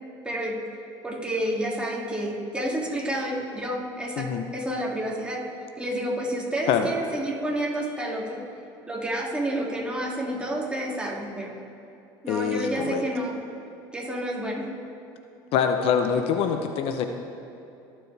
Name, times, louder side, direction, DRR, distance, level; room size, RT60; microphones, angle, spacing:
voice 1, 0.2-0.6 1.0-5.4 5.8-8.4 8.9-11.6 12.2-13.4 13.9-14.7, right 1 dB, 10° right, -3 dB, 2.5 m, -29 dB
voice 2, 12.3-13.0 15.5-17.1, left 7 dB, 65° left, 6 dB, 0.8 m, -24 dB
20.5 x 7.6 x 3.4 m, 2.7 s
supercardioid pair, 95°, 11 cm